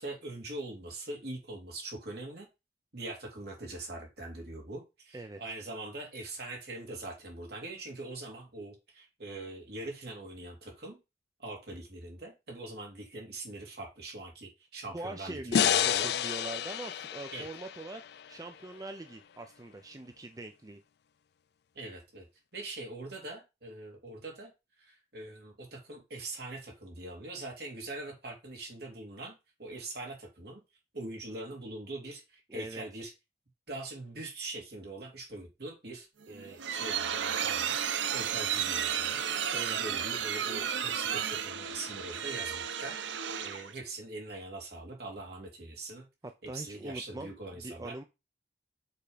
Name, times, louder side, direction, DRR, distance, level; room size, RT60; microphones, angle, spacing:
voice 1, 0.0-2.5 2.9-11.0 11.4-16.1 17.3-17.5 21.7-22.3 22.5-24.5 24.8-30.6 30.9-33.1 33.7-37.8 38.1-46.1 46.4-48.0, right 2 dB, 60° right, 0 dB, 2.6 m, -42 dB
voice 2, 14.9-18.0 18.3-20.8 32.5-32.8 39.5-39.8 46.5-48.0, right 2 dB, 20° right, 7 dB, 0.5 m, -42 dB
sound 1, 15.5-18.7, left 9 dB, 60° left, 0.3 m, -30 dB
sound 2, 36.2-43.7, right 8 dB, 85° right, 0.6 m, -33 dB
6.8 x 3.6 x 5.0 m, 0.26 s
head